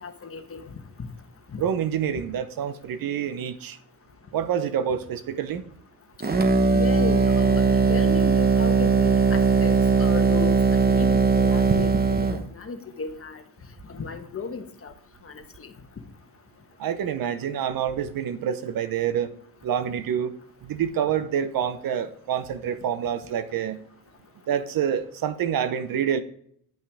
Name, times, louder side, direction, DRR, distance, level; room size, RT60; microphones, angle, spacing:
voice 1, 0.0-0.6 1.5-1.6 6.7-7.6 7.9-11.9 12.6-13.4 13.9-14.9 15.3-15.4 15.6-15.7, left 5 dB, 35° left, 1.3 m, -34 dB
voice 2, 1.6-3.8 4.3-5.6 16.8-19.3 19.6-20.3 20.7-23.8 24.5-26.2, right 8 dB, 60° right, 0.9 m, -27 dB
sound 1, 6.2-12.4, right 4 dB, 25° right, 1.1 m, -20 dB
10.5 x 5.5 x 3.6 m
supercardioid pair, 65°, 39 cm